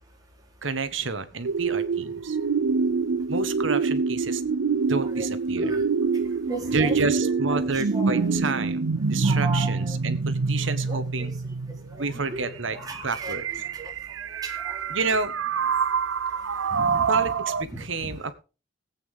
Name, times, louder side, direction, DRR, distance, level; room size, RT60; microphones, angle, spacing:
voice 1, 0.6-2.5 3.3-4.4 4.9-5.7 6.7-11.3 12.0-12.8 13.0-13.4 14.9-15.3 17.1-18.3, right 4 dB, 75° right, 11 dB, 1.5 m, -29 dB
sound 1, 1.4-17.6, right 5 dB, 90° right, 0.6 m, -26 dB
voice 2, 6.5-8.4 9.2-10.0 10.6-11.3 12.3-13.9 14.4-14.8 16.8-17.2 17.7-18.1, right 1 dB, 20° right, 0 dB, 3.8 m, -36 dB
19.5 x 8.7 x 3.7 m, 0.33 s
head